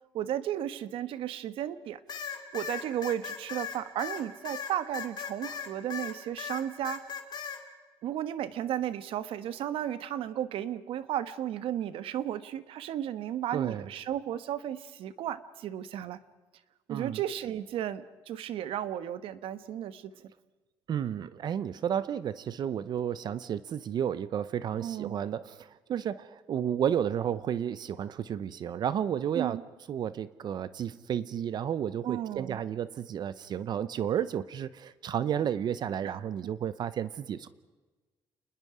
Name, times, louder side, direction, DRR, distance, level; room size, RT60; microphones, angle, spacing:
voice 1, 0.1-2.0 2.5-7.0 8.0-16.2 16.9-20.1 24.8-25.2 29.3-29.6 32.0-32.6 36.0-36.1, right 11 dB, 70° right, 14 dB, 1.2 m, -34 dB
sound 1, 2.1-6.1 6.4-7.6, left 7 dB, 45° left, 2.9 m, -37 dB
voice 2, 13.5-13.8 16.9-17.2 20.9-29.6 29.9-37.5, right 9 dB, 50° right, 16 dB, 0.7 m, -32 dB
29.0 x 20.5 x 5.0 m, 1.3 s
cardioid pair, 150°, 10 cm